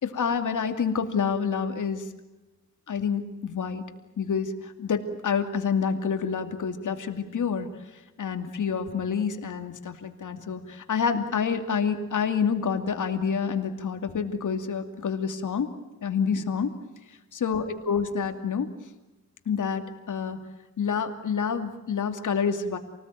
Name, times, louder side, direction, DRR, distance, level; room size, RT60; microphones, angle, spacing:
voice 1, 0.0-2.1 2.9-3.8 4.2-7.7 8.2-15.7 16.0-16.7 17.3-18.7 19.5-20.4 20.8-22.8, left 6 dB, 70° left, 7 dB, 2.6 m, -28 dB
28.0 x 19.0 x 9.2 m, 1.1 s
wide cardioid pair, 110°, 31 cm